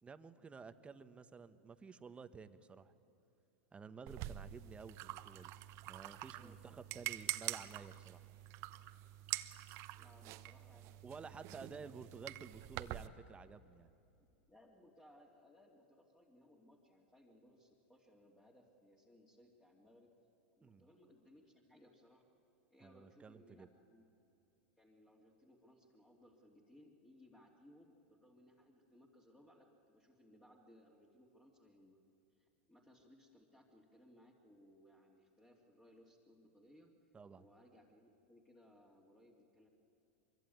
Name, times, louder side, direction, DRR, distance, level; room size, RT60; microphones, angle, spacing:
voice 1, 0.0-2.9 3.7-5.5 5.9-8.3 11.0-13.9 20.6-20.9 22.8-23.7 37.1-37.4, right 5 dB, 20° right, 11 dB, 1.2 m, -53 dB
sound 1, 4.1-13.1, right 16 dB, 50° right, 1.0 m, -46 dB
voice 2, 6.3-6.8 9.9-11.9 14.5-20.1 20.5-22.2 22.7-24.1 24.8-32.0 32.3-36.9 37.4-39.7, left 1 dB, 10° left, -3 dB, 2.8 m, -65 dB
24.0 x 23.0 x 9.5 m, 2.7 s
hypercardioid pair, 110°, 6 cm